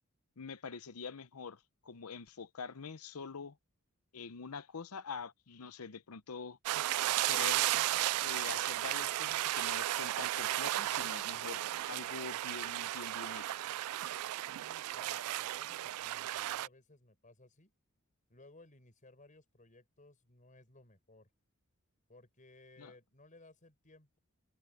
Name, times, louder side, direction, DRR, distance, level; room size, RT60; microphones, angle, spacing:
voice 1, 0.4-3.6 4.1-6.6 7.3-7.7 8.2-11.6 11.9-13.6 22.8-22.9, left 5 dB, 90° left, 0.8 m, -45 dB
sound 1, 6.7-16.7, right 15 dB, 90° right, 0.3 m, -34 dB
sound 2, 8.2-13.4, left 1 dB, 40° right, 2.8 m, -67 dB
voice 2, 14.5-17.7 18.3-21.3 22.1-24.2, left 2 dB, 35° left, 5.3 m, -60 dB
head